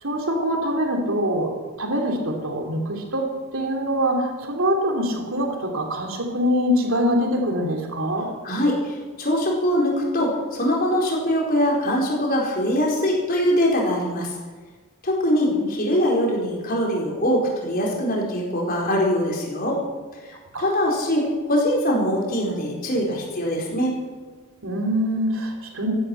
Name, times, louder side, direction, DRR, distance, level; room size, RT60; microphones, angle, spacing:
voice 1, 0.0-1.5 1.8-3.3 3.5-8.3 20.5-20.8 24.6-25.9, equal, 65° right, 2 dB, 3.2 m, -24 dB
voice 2, 8.4-14.3 15.0-19.8 20.6-23.9, equal, 45° left, -2 dB, 4.5 m, -22 dB
14.5 x 12.0 x 7.9 m, 1.4 s
head